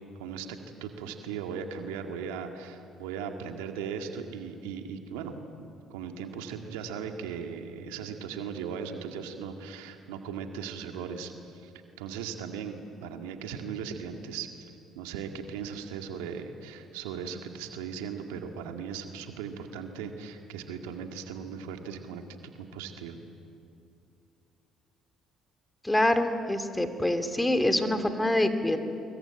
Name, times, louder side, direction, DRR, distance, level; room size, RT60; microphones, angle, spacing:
voice 1, 0.2-11.7 12.0-14.7 15.0-23.2, right 6 dB, 85° right, 4 dB, 2.0 m, -38 dB
voice 2, 25.8-28.8, left 1 dB, 10° left, 8 dB, 2.7 m, -25 dB
25.5 x 22.5 x 9.0 m, 2.6 s
hypercardioid pair, 60°, 0 cm